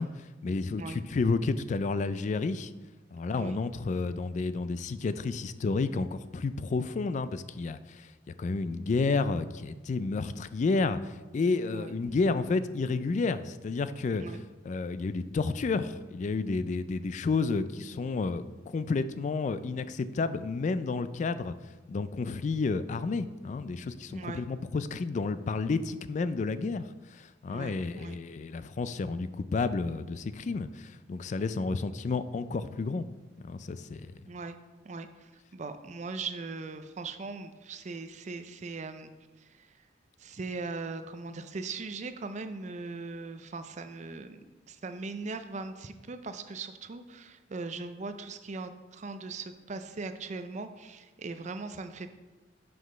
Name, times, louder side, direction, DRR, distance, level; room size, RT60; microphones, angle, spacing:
voice 1, 0.0-2.7 3.1-14.2 14.7-21.5 21.9-26.8 27.1-33.1 33.4-34.1, left 3 dB, 45° left, 13 dB, 0.3 m, -31 dB
voice 2, 11.7-12.2 14.2-14.4 24.1-24.4 27.5-28.2 34.3-34.6 34.8-39.1 39.4-39.7 40.2-44.4 44.7-52.1, right 3 dB, 45° right, 9 dB, 0.5 m, -39 dB
5.9 x 5.1 x 5.4 m, 1.2 s
head